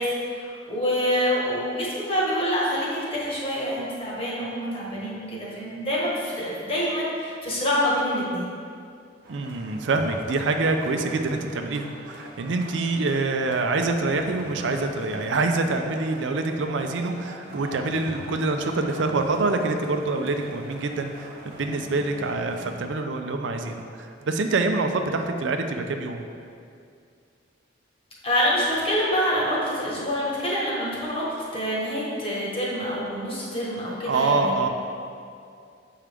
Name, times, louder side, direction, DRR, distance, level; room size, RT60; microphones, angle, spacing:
voice 1, 0.0-8.5 28.2-31.2 31.5-34.5, equal, 30° left, -5 dB, 1.3 m, -26 dB
sound 1, 9.2-22.7, right 1 dB, 55° right, 1.0 m, -42 dB
voice 2, 9.3-26.2 34.1-34.7, right 3 dB, 75° right, 5 dB, 0.5 m, -26 dB
7.3 x 4.7 x 3.4 m, 2.4 s
head